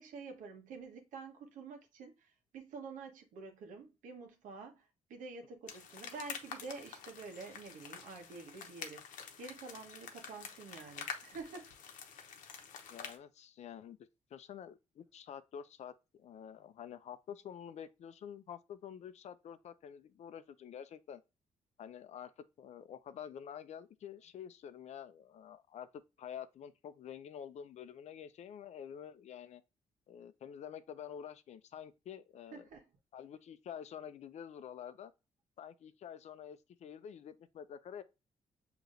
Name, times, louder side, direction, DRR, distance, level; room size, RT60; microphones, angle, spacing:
voice 1, 0.0-9.0 9.4-11.7 32.5-32.8, right 4 dB, 85° right, 1.1 m, -48 dB
sound 1, 5.7-13.2, left 7 dB, 85° left, 0.8 m, -48 dB
voice 2, 12.9-14.0 14.3-21.2 21.8-22.3 22.6-25.9 26.2-29.6 30.1-32.7 33.1-35.1 35.6-38.0, left 8 dB, 60° left, 0.5 m, -48 dB
6.5 x 2.9 x 2.5 m
cardioid pair, 110°, 13 cm